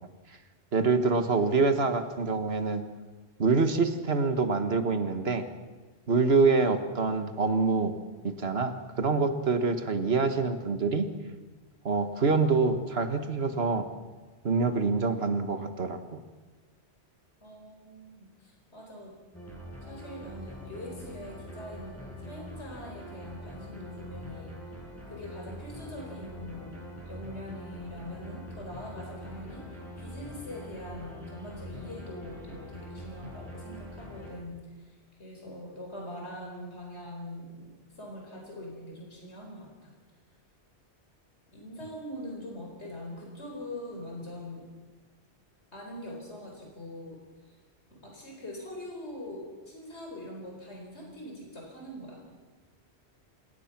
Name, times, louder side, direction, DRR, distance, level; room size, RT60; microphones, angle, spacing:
voice 1, 0.7-2.9 3.4-5.5 6.1-7.9 8.2-11.1 11.9-13.9 14.4-16.2, right 4 dB, 65° right, 8 dB, 1.7 m, -26 dB
voice 2, 17.4-19.2 19.8-24.6 25.1-37.7 38.0-39.9 41.5-44.7 45.7-47.6 47.9-52.2, left 1 dB, 85° left, 0 dB, 4.5 m, -43 dB
sound 1, 19.3-34.3, left 1 dB, 15° left, 7.6 m, -44 dB
27.0 x 18.0 x 6.0 m, 1.3 s
omnidirectional pair, 1.1 m